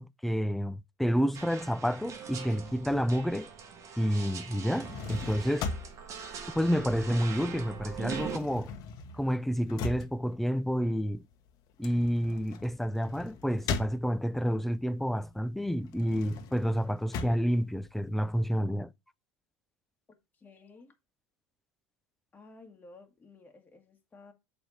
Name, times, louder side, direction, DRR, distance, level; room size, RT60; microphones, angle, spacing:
voice 1, 0.0-3.5 4.0-5.7 6.5-8.7 9.2-11.2 11.8-18.9, equal, 5° left, 0.4 m, -29 dB
sound 1, 1.3-8.4, right 6 dB, 40° right, 1.6 m, -42 dB
sound 2, 4.6-7.4 7.7-14.5 15.0-18.5, left 5 dB, 55° left, 1.3 m, -40 dB
voice 2, 20.3-20.9 22.3-24.3, left 3 dB, 20° left, 1.7 m, -54 dB
7.9 x 3.5 x 5.5 m
hypercardioid pair, 95°, 8 cm